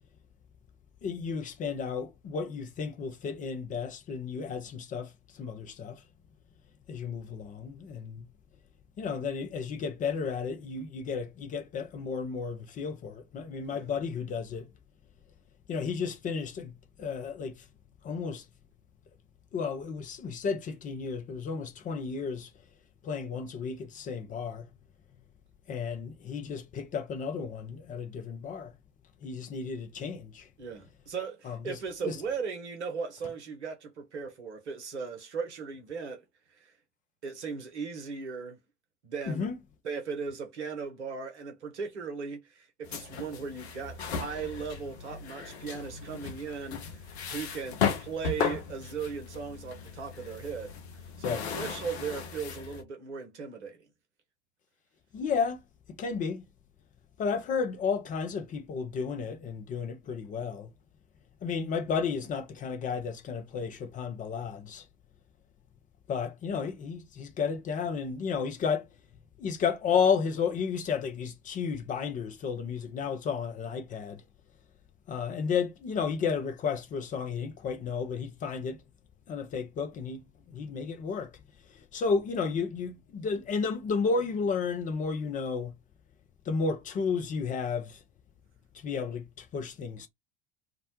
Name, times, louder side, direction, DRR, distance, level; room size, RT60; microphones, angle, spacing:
voice 1, 1.0-6.0 6.9-8.3 9.0-14.7 15.7-16.7 17.0-17.7 18.0-18.5 19.5-22.5 23.0-24.7 25.7-28.7 29.2-30.5 31.4-31.8 32.1-32.2 39.3-39.6 51.2-51.4 55.1-55.6 55.9-56.4 57.2-60.7 61.4-64.9 66.1-68.9 69.4-74.2 75.1-78.8 79.3-81.3 81.7-85.7 86.5-88.0 88.8-90.1, left 5 dB, 25° left, 0.4 m, -32 dB
voice 2, 30.6-36.2 36.6-36.7 37.2-38.6 39.0-39.5 39.8-50.8 51.2-53.9, right 5 dB, 75° right, 0.8 m, -37 dB
sound 1, 42.8-52.8, left 6 dB, 70° left, 0.6 m, -36 dB
2.4 x 2.0 x 2.8 m
figure-of-eight pair, 70°, 35 cm